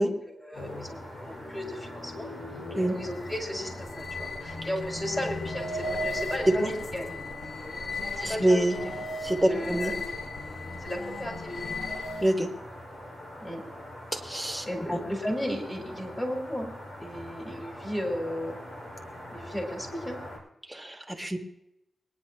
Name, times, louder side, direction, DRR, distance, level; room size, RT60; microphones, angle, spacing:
voice 1, 0.0-2.3 2.9-7.1 8.2-9.0 9.4-9.9 10.8-11.8 13.4-13.6 14.6-16.7 17.0-18.6 19.3-20.2, equal, 15° left, 0 dB, 4.4 m, -35 dB
sound 1, 0.5-20.4, left 1 dB, 85° left, 5.5 m, -43 dB
sound 2, 2.8-12.5, left 2 dB, 65° left, 1.5 m, -36 dB
voice 2, 8.2-8.8 9.2-9.9 12.2-12.5 14.1-15.0 20.7-21.4, right 1 dB, 5° right, 2 dB, 2.0 m, -26 dB
23.0 x 10.0 x 3.0 m, 0.85 s
cardioid pair, 85°, 0 cm